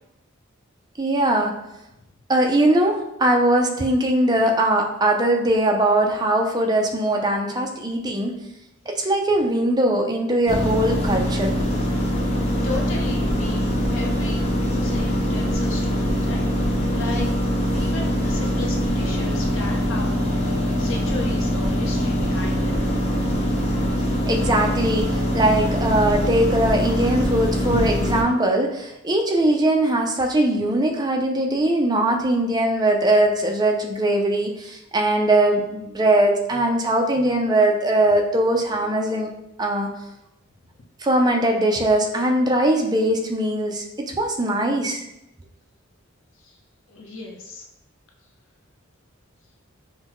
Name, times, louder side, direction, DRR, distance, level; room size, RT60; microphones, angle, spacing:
voice 1, 1.0-1.5 2.3-8.3 8.9-11.5 24.3-25.1 25.3-39.3 39.6-39.9 41.0-43.8 44.1-45.0, right 1 dB, 20° right, 2 dB, 0.4 m, -20 dB
sound 1, 10.5-28.2, equal, 30° left, 0.6 m, -23 dB
voice 2, 12.6-16.5 16.9-17.3 17.7-20.1 20.4-22.8 27.6-27.9 46.4-46.6 46.9-47.6, left 2 dB, 65° left, 0 dB, 0.8 m, -35 dB
5.7 x 2.2 x 3.0 m, 0.86 s
head